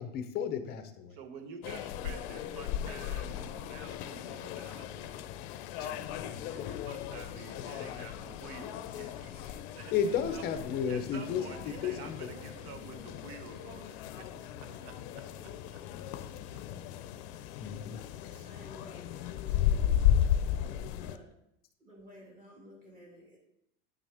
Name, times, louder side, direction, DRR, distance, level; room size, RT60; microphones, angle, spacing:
voice 1, 0.0-1.2 5.8-5.9 6.2-6.3 6.6-6.7 9.9-12.3 17.6-18.0, left 7 dB, 30° left, 8 dB, 0.6 m, -33 dB
voice 2, 1.1-5.3 5.7-10.4 10.9-14.3 14.5-15.2, right 5 dB, 60° right, 7 dB, 1.2 m, -49 dB
sound 1, 1.6-21.2, left 10 dB, 70° left, 0.6 m, -35 dB
voice 3, 11.3-13.8 14.3-17.1 17.6-17.7 18.2-21.3 21.8-23.4, right 1 dB, 25° right, -3 dB, 1.9 m, -54 dB
9.1 x 6.3 x 3.4 m, 0.75 s
cardioid pair, 170°, 34 cm